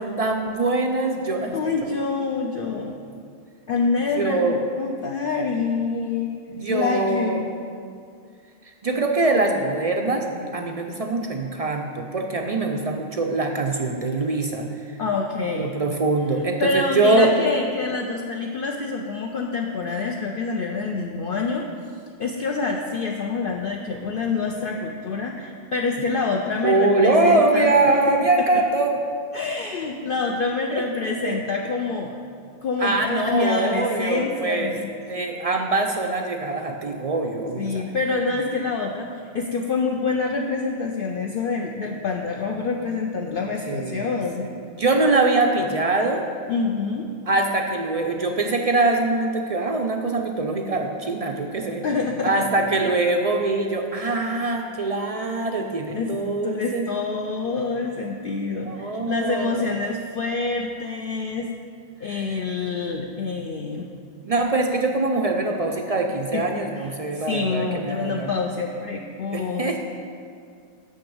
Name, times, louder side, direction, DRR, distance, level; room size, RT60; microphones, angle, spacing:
voice 1, 0.0-1.6 1.8-1.9 4.2-4.7 6.5-7.4 8.8-14.7 15.6-17.3 26.0-26.1 26.6-28.9 30.7-31.4 32.8-34.7 35.1-37.8 43.7-44.2 44.8-46.2 47.3-51.8 52.2-56.9 58.7-59.9 62.1-62.3 64.2-68.3 69.3-69.8, right 2 dB, 50° right, 3 dB, 0.4 m, -23 dB
voice 2, 1.5-3.0 3.7-6.3 6.7-7.5 15.0-15.7 16.6-21.7 22.2-28.0 28.4-28.5 29.3-32.2 32.6-34.9 37.6-44.5 46.5-47.1 51.8-52.9 55.9-61.5 62.0-63.9 66.3-69.7, left 4 dB, 60° left, 1 dB, 0.7 m, -26 dB
6.4 x 6.0 x 7.0 m, 2.3 s
omnidirectional pair, 1.2 m